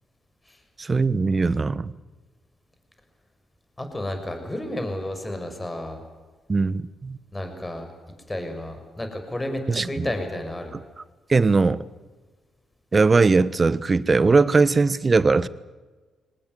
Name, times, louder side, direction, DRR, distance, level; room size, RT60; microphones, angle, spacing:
voice 1, 0.8-1.9 6.5-7.2 9.7-10.1 11.3-11.8 12.9-15.5, right 4 dB, 35° right, 18 dB, 1.2 m, -20 dB
voice 2, 3.8-6.0 7.3-7.9 8.3-10.7, left 1 dB, 20° left, 6 dB, 6.2 m, -31 dB
24.0 x 19.5 x 9.6 m, 1.3 s
hypercardioid pair, 45°, 0 cm